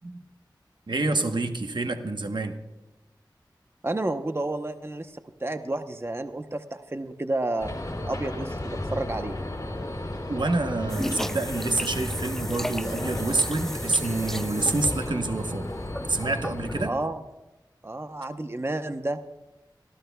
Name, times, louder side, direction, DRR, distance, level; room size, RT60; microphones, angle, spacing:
voice 1, 0.9-2.6 10.3-15.7 16.1-17.0, right 2 dB, 70° right, 6 dB, 1.1 m, -27 dB
voice 2, 3.8-5.1 5.4-7.7 8.1-9.4 16.9-17.2 17.8-19.2, right 2 dB, 30° right, 7 dB, 0.8 m, -30 dB
sound 1, 7.6-16.9, left 1 dB, 50° left, 3.5 m, -34 dB
sound 2, 10.9-16.7, equal, 5° left, 0.4 m, -35 dB
25.5 x 14.5 x 2.3 m, 1.0 s
wide cardioid pair, 50°, 8 cm